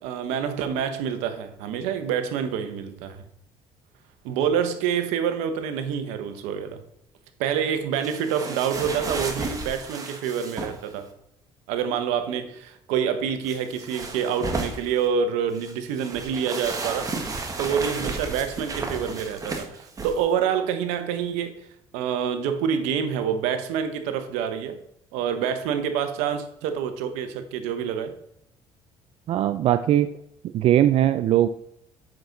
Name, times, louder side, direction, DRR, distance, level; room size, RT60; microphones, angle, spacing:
voice 1, 0.0-3.2 4.2-6.8 7.4-11.1 11.7-17.1 17.6-21.6 21.9-24.8 25.1-28.1, right 7 dB, 85° right, 1.0 m, -27 dB
sound 1, 8.0-10.9 13.4-15.0 15.5-20.2, right 3 dB, 30° right, 1.6 m, -33 dB
voice 2, 29.3-30.1 30.5-31.5, right 12 dB, 60° right, 0.4 m, -20 dB
7.7 x 5.9 x 3.9 m
supercardioid pair, 80°, 11 cm